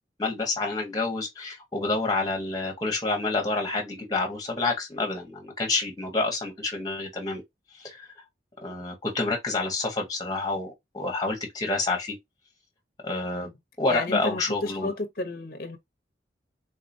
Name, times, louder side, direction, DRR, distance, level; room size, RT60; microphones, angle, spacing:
voice 1, 0.2-7.4 7.8-8.1 8.6-12.2 13.0-13.5 13.8-14.9, left 3 dB, 20° left, 1.1 m, -28 dB
voice 2, 13.9-15.8, left 3 dB, 55° left, 0.8 m, -32 dB
3.9 x 2.7 x 2.6 m
head